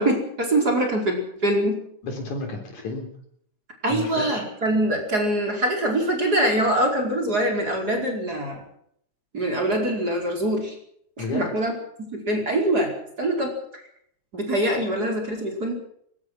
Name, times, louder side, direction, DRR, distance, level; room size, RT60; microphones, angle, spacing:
voice 1, 0.0-1.8 3.8-8.6 9.3-10.8 11.2-11.7 12.0-12.9 13.2-13.8 14.3-15.7, right 1 dB, 30° right, 2 dB, 5.2 m, -24 dB
voice 2, 2.0-3.1 3.9-4.4 11.2-11.6, left 3 dB, 75° left, 2 dB, 5.1 m, -31 dB
22.0 x 20.5 x 6.2 m, 0.69 s
omnidirectional pair, 3.4 m